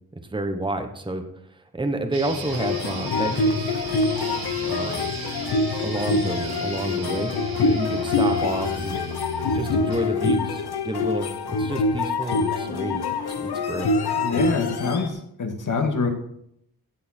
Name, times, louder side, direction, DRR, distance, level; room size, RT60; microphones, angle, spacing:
voice 1, 0.1-1.2 1.7-3.7 4.7-5.1 5.8-7.3 7.7-9.0 9.5-11.3 11.6-13.0 13.4-13.9, right 2 dB, 10° right, 6 dB, 1.1 m, -29 dB
sound 1, 2.1-10.1, right 2 dB, 60° right, 3.1 m, -35 dB
sound 2, 2.4-15.1, left 3 dB, 70° left, 1.1 m, -25 dB
voice 2, 14.2-16.1, left 4 dB, 50° left, 4 dB, 2.1 m, -25 dB
16.0 x 7.5 x 4.4 m, 0.74 s
wide cardioid pair, 145°, 39 cm